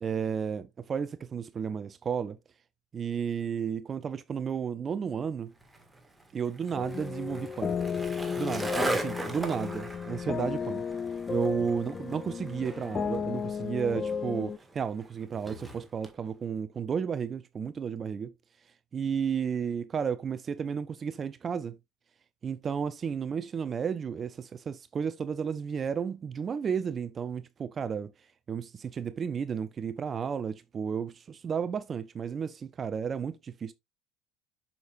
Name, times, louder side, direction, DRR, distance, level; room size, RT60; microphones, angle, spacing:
voice 1, 0.0-2.4 2.9-5.5 6.3-7.8 8.4-10.8 11.3-18.3 18.9-21.8 22.4-28.1 28.5-33.7, right 7 dB, 35° right, 0.5 m, -33 dB
Skateboard, 5.6-16.1, right 2 dB, 10° right, 1.8 m, -39 dB
sound 1, 6.7-14.6, left 6 dB, 30° left, 0.4 m, -34 dB
6.9 x 6.6 x 2.5 m
supercardioid pair, 105°, 0 cm